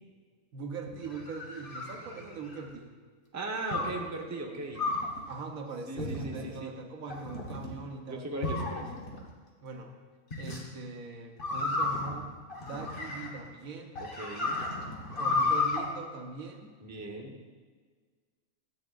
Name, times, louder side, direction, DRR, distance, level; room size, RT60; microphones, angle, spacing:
voice 1, 0.5-2.9 5.3-8.3 9.6-10.0 10.4-12.4 12.6-13.9 15.2-16.7, right 4 dB, 85° right, 3 dB, 1.3 m, -41 dB
sound 1, 0.9-2.7 3.7-4.0 4.7-5.2 6.0-6.5 7.1-7.7 8.4-9.2 10.3-10.6 11.4-13.5 13.9-15.8, left 3 dB, 40° left, 1.4 m, -33 dB
voice 2, 3.3-4.8 5.9-6.7 8.1-8.9 14.0-14.6 16.8-17.4, right 2 dB, 15° right, 0 dB, 0.6 m, -38 dB
12.5 x 7.7 x 2.4 m, 1.5 s
omnidirectional pair, 1.4 m